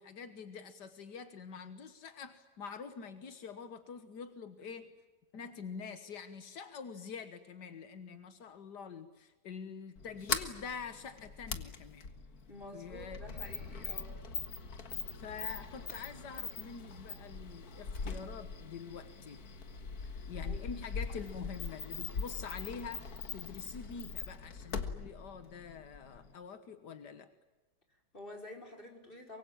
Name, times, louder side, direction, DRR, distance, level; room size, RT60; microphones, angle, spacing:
voice 1, 0.0-4.9 5.3-12.1 12.7-13.2 15.2-19.4 20.3-23.1 23.3-27.3, left 6 dB, 85° left, 10 dB, 1.9 m, -46 dB
Sliding door, 10.0-26.3, left 5 dB, 65° left, 2.1 m, -41 dB
voice 2, 12.5-14.2 20.1-20.6 27.9-29.4, left 1 dB, 30° left, 3 dB, 5.0 m, -50 dB
24.5 x 23.5 x 8.9 m, 1.2 s
omnidirectional pair, 1.8 m